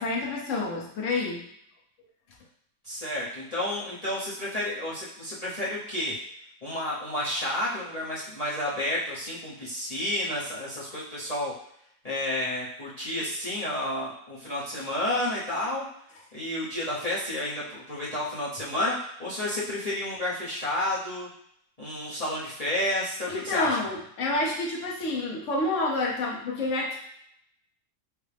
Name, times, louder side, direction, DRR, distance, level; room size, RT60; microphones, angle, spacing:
voice 1, 0.0-1.4 23.3-27.0, left 2 dB, 55° left, -3 dB, 1.1 m, -28 dB
voice 2, 2.8-6.2 6.6-11.5 12.0-15.8 16.3-21.3 21.8-23.8, left 1 dB, 30° left, -8 dB, 0.7 m, -31 dB
6.3 x 2.1 x 3.3 m, 0.71 s
omnidirectional pair, 1.8 m